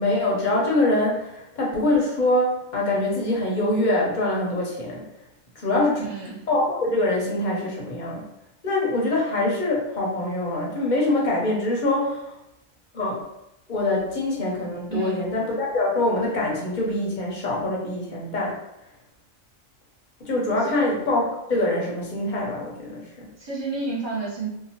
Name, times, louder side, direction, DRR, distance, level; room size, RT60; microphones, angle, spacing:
voice 1, 0.0-5.0 5.6-6.0 6.5-8.2 8.6-12.4 12.9-13.2 13.7-18.5 20.2-23.3, left 2 dB, 45° left, -3 dB, 0.6 m, -24 dB
voice 2, 6.0-6.4 14.9-15.2 20.6-20.9 23.4-24.5, right 4 dB, 30° right, -8 dB, 0.5 m, -30 dB
2.8 x 2.2 x 2.8 m, 0.85 s
omnidirectional pair, 1.4 m